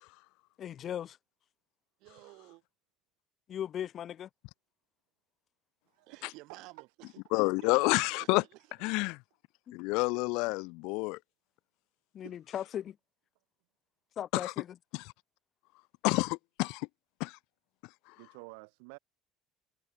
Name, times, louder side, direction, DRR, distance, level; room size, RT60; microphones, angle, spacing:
voice 1, 0.6-1.2 3.5-4.3 9.7-9.8 12.1-13.0 14.2-14.7, left 10 dB, 35° left, 2.2 m, -37 dB
voice 2, 2.0-2.6 6.1-7.1 7.6-8.6, right 22 dB, 65° right, 4.1 m, -52 dB
voice 3, 5.9-6.4 6.8-6.9 12.2-12.4 18.2-19.0, right 34 dB, 90° right, 2.1 m, -50 dB
voice 4, 7.3-8.4 8.8-9.2 9.7-11.2 14.3-14.5 14.9-15.1 16.0-16.9 17.2-17.4, left 27 dB, 70° left, 0.4 m, -29 dB
cardioid pair, 150°, 0 cm